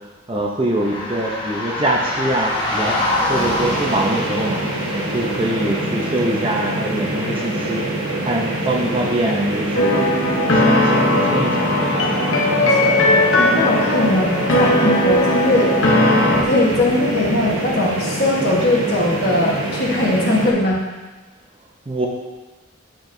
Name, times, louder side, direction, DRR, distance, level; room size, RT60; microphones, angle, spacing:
voice 1, 0.3-3.0 3.3-4.6 5.1-7.8 8.2-10.1 10.5-11.7 21.9-22.1, right 1 dB, 25° right, 0 dB, 0.6 m, -23 dB
sound 1, 0.7-5.9, left 1 dB, 20° left, 1.2 m, -25 dB
sound 2, 3.3-20.5, right 1 dB, 90° right, 1.1 m, -25 dB
sound 3, 9.7-16.4, left 1 dB, 75° left, 0.8 m, -18 dB
voice 2, 13.4-15.7 16.3-20.8, left 1 dB, 50° left, -3 dB, 1.2 m, -20 dB
8.9 x 4.5 x 2.6 m, 1.2 s
head